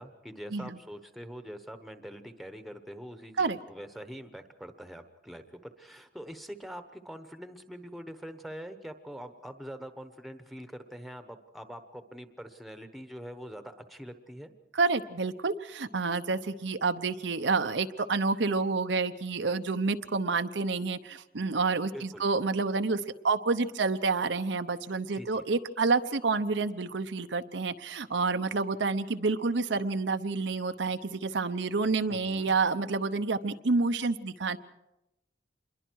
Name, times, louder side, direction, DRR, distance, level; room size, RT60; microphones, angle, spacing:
voice 1, 0.0-14.5 21.9-22.2 25.1-25.4 32.1-32.5, equal, ahead, 8 dB, 1.1 m, -44 dB
voice 2, 14.7-34.6, right 4 dB, 80° right, 9 dB, 0.8 m, -29 dB
27.0 x 22.0 x 4.7 m, 0.92 s
head